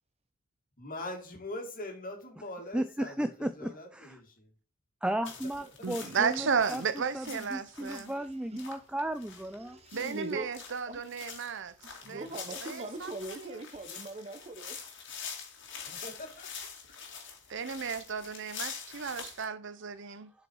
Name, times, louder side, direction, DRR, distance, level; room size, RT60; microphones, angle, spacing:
voice 1, 0.8-4.5 12.0-12.2 15.8-16.7, left 1 dB, 45° left, 2.4 m, -42 dB
voice 2, 2.7-4.2 5.0-6.8 7.1-9.8, right 1 dB, 5° right, 0.3 m, -35 dB
sound 1, 5.2-19.5, left 6 dB, 65° left, 2.3 m, -45 dB
voice 3, 5.8-8.1 9.9-12.3 12.6-13.6 17.5-20.3, right 6 dB, 60° right, 0.7 m, -34 dB
voice 4, 8.0-8.6 9.4-10.5 10.9-11.2 12.0-14.8, right 2 dB, 30° right, 1.0 m, -42 dB
7.7 x 5.1 x 4.7 m
head